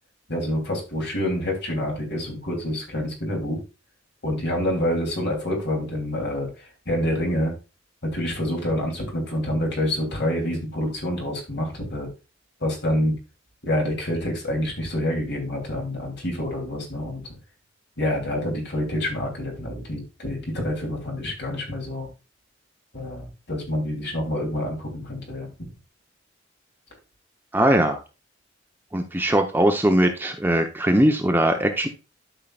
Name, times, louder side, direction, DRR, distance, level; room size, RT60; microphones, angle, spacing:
voice 1, 0.3-3.6 4.2-7.5 8.0-12.1 12.6-13.1 13.6-17.2 18.0-22.1 22.9-25.7, left 1 dB, 60° left, 1 dB, 3.1 m, -27 dB
voice 2, 27.5-28.0 28.9-31.9, right 1 dB, 10° right, 4 dB, 0.8 m, -20 dB
12.0 x 5.7 x 2.4 m, 0.30 s
head